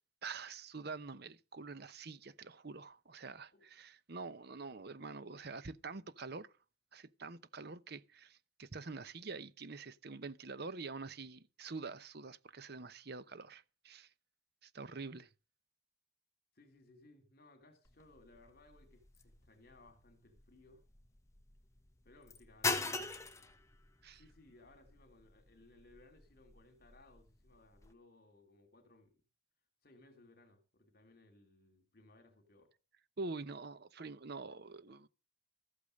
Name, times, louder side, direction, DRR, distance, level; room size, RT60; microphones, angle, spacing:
voice 1, 0.2-6.5 6.9-14.1 14.6-15.3 24.0-24.2 33.2-35.1, right 4 dB, 50° right, 0.8 m, -46 dB
voice 2, 16.5-20.9 22.0-23.3 24.1-29.1 29.8-32.7, left 2 dB, 50° left, 2.8 m, -63 dB
sound 1, 17.8-27.9, left 3 dB, 15° left, 1.1 m, -44 dB
14.0 x 8.5 x 6.5 m
head